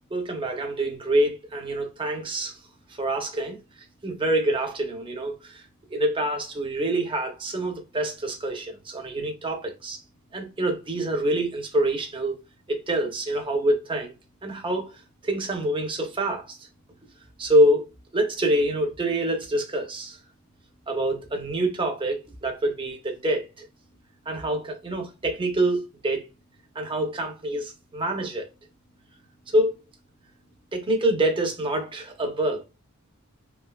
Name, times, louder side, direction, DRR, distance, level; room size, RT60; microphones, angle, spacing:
voice 1, 0.1-2.5 3.0-3.6 4.0-5.6 5.9-10.0 10.3-12.4 12.7-14.1 14.4-14.9 15.2-16.6 17.4-17.8 18.1-20.2 20.9-23.6 24.3-26.2 26.7-28.5 29.5-29.7 30.7-32.6, right 1 dB, 25° right, 0.7 m, -26 dB
3.3 x 2.6 x 2.3 m
head